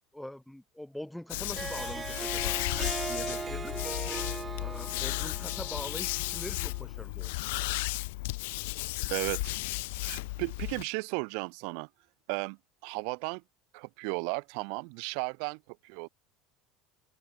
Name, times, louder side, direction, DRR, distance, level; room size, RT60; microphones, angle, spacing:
voice 1, 0.1-2.6 3.1-3.8 4.6-7.5, left 1 dB, 5° left, 2.7 m, -43 dB
sound 1, 1.3-10.8, left 23 dB, 85° left, 2.0 m, -34 dB
Harp, 1.4-6.8, right 5 dB, 20° right, 0.7 m, -39 dB
voice 2, 9.1-9.5 10.0-11.9 12.3-13.4 13.7-16.1, right 40 dB or more, 75° right, 1.1 m, -35 dB
supercardioid pair, 125°, 0 cm